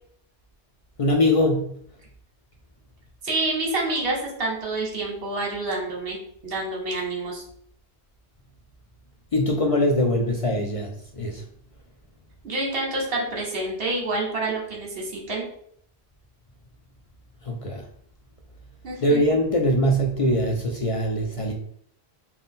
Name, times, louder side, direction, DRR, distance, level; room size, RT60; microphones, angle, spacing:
voice 1, 1.0-1.7 9.3-11.4 17.4-17.8 19.0-21.5, left 1 dB, 55° left, 1 dB, 0.4 m, -22 dB
voice 2, 3.2-6.2 6.4-7.4 12.4-15.4 18.8-19.2, right 2 dB, 65° right, -1 dB, 1.2 m, -28 dB
4.1 x 2.2 x 3.6 m, 0.65 s
omnidirectional pair, 1.1 m